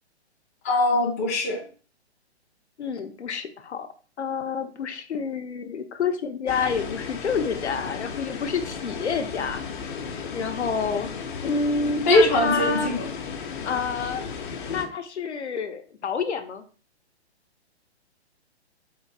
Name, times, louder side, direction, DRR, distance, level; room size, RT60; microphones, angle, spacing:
voice 1, 0.6-1.6 12.1-13.0, left 2 dB, 15° left, 0 dB, 0.3 m, -21 dB
voice 2, 2.8-3.9 4.2-9.6 10.3-11.1 11.4-13.0 13.3-14.2 14.7-16.6, left 5 dB, 85° left, 7 dB, 0.8 m, -28 dB
sound 1, 6.5-14.9, left 6 dB, 50° left, 0.7 m, -35 dB
3.8 x 2.6 x 4.0 m, 0.40 s
hypercardioid pair, 140°, 33 cm